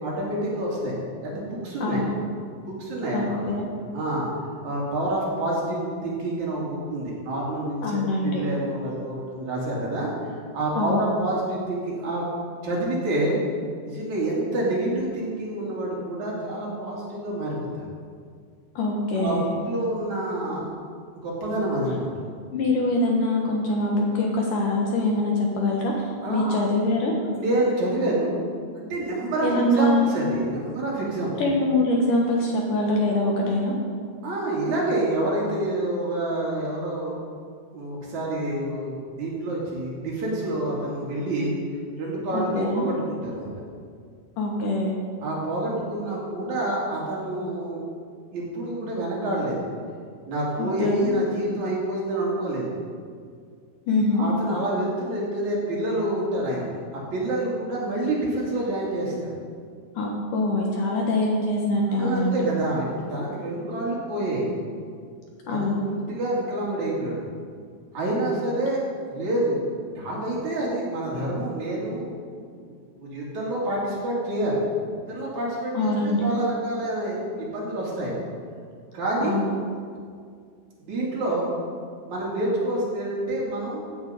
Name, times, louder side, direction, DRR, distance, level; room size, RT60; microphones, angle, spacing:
voice 1, 0.0-2.1 2.6-3.4 3.9-4.3 4.6-12.3 12.6-13.4 13.8-17.9 19.2-20.7 21.2-22.1 26.2-26.6 27.4-28.3 28.8-29.5 29.8-31.3 34.2-37.2 37.7-41.5 42.0-43.5 45.2-47.9 48.3-49.6 50.3-52.7 54.1-56.7 56.9-59.3 61.9-64.5 65.5-67.2 67.9-72.1 72.5-74.6 75.1-75.9 76.2-78.2 78.9-79.3 80.8-81.5 82.1-83.8, right 1 dB, 50° right, -5 dB, 3.7 m, -27 dB
voice 2, 1.8-2.1 3.1-3.7 7.8-8.4 10.8-11.0 18.8-19.6 22.5-27.2 29.4-30.1 31.4-33.7 42.3-42.9 44.4-45.0 50.6-51.1 53.9-54.3 60.0-62.4 65.5-65.8 75.7-76.2 79.2-79.5, left 2 dB, 65° left, -1 dB, 2.5 m, -24 dB
15.0 x 8.9 x 5.2 m, 2.1 s
omnidirectional pair, 4.6 m